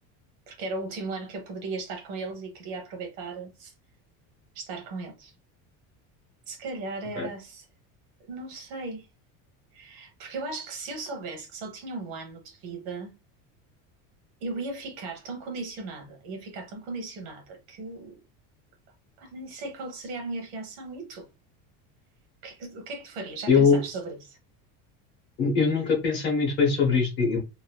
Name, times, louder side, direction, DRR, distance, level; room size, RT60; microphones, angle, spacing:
voice 1, 0.5-3.7 4.5-5.3 6.5-7.6 8.3-9.1 9.7-13.1 14.4-18.2 19.2-21.3 22.4-24.4, right 3 dB, 65° right, 1.2 m, -37 dB
voice 2, 23.5-23.8 25.4-27.4, left 5 dB, 30° left, 0.7 m, -22 dB
2.9 x 2.6 x 2.2 m
cardioid pair, 175°, 39 cm